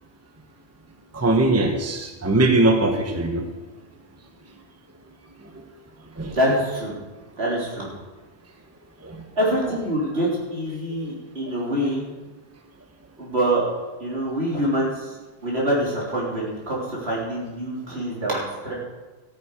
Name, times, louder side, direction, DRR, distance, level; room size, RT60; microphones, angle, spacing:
voice 1, 1.1-3.4 6.2-6.4 9.0-9.1, right 2 dB, 15° right, 4 dB, 1.0 m, -20 dB
voice 2, 6.3-7.0 7.4-7.9 9.4-12.1 13.2-13.6 14.0-15.2 15.4-18.7, right 1 dB, 75° right, -5 dB, 3.9 m, -25 dB
13.5 x 9.4 x 5.0 m, 1.3 s
omnidirectional pair, 1.1 m